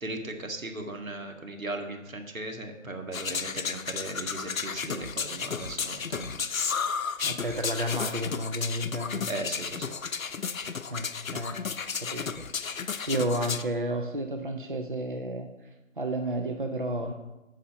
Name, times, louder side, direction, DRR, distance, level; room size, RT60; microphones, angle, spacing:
voice 1, 0.0-6.3 9.3-9.9, right 2 dB, 85° right, 4 dB, 2.1 m, -37 dB
sound 1, 3.1-13.6, left 6 dB, 85° left, 0.8 m, -33 dB
voice 2, 7.2-9.2 10.9-11.6 12.0-15.5 16.0-17.1, right 1 dB, 40° right, 4 dB, 0.6 m, -32 dB
9.8 x 5.7 x 6.9 m, 1.1 s
figure-of-eight pair, 180°, 40 cm